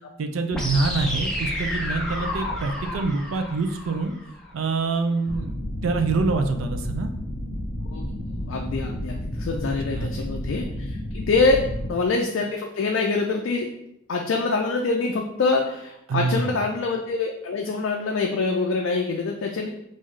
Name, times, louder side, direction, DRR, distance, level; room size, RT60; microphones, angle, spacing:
voice 1, 0.2-4.1 4.5-7.1 9.9-10.3 16.1-16.5, right 3 dB, 80° right, 6 dB, 0.4 m, -26 dB
sound 1, 0.5-4.5, left 1 dB, ahead, 0.5 m, -30 dB
sound 2, 5.3-11.9, equal, 50° left, 0.9 m, -31 dB
voice 2, 7.9-13.7 14.1-19.7, left 3 dB, 65° left, 1 dB, 0.4 m, -25 dB
3.7 x 2.6 x 3.1 m, 0.79 s
head